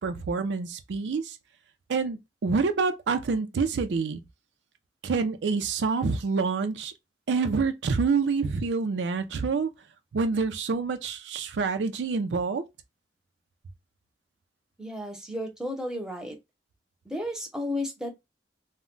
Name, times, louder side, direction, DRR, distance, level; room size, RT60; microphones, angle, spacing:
voice 1, 0.0-1.3 1.9-4.2 5.0-6.9 7.3-9.7 10.1-12.6, right 4 dB, 80° right, 0.4 m, -27 dB
voice 2, 14.8-16.4 17.0-18.1, left 1 dB, 5° right, 0.7 m, -33 dB
2.2 x 2.1 x 3.7 m
head